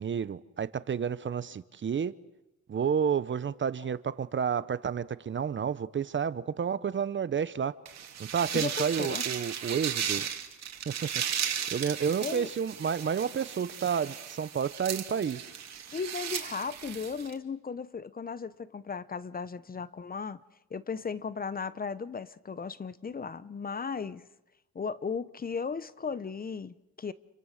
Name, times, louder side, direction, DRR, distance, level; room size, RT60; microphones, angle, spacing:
voice 1, 0.0-2.1 2.7-7.8 8.3-10.3 10.9-11.1 11.7-15.4, right 7 dB, 40° right, 0.9 m, -30 dB
sound 1, 7.9-17.3, right 8 dB, 60° right, 2.7 m, -36 dB
voice 2, 8.5-9.2 12.2-12.5 15.9-20.4 20.7-24.2 24.7-27.1, left 5 dB, 30° left, 0.8 m, -36 dB
28.5 x 24.0 x 6.6 m
cardioid pair, 90°, 30 cm